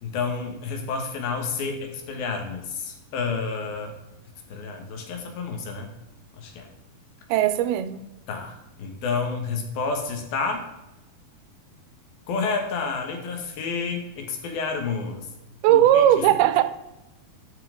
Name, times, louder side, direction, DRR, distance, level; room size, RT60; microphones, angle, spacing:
voice 1, 0.0-3.9 4.5-5.9 6.3-6.7 8.3-10.7 12.3-15.3 15.7-16.3, left 4 dB, 75° left, 3.2 m, -30 dB
voice 2, 7.3-8.1 15.6-16.6, right 11 dB, 85° right, 2.6 m, -18 dB
12.5 x 5.7 x 3.8 m
omnidirectional pair, 4.4 m